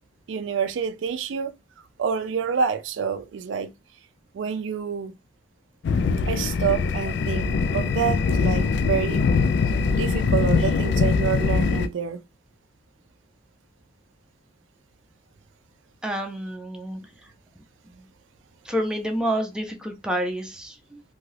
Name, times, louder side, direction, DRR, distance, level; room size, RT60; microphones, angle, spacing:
voice 1, 0.3-1.5 2.0-3.7 4.3-5.2 6.3-9.3 9.9-12.2, right 7 dB, 85° right, 0.4 m, -27 dB
sound 1, 5.8-11.9, left 5 dB, 65° left, 0.3 m, -22 dB
voice 2, 16.0-17.3 17.9-18.1 18.6-21.0, equal, 5° right, 0.6 m, -29 dB
2.7 x 2.4 x 3.2 m
head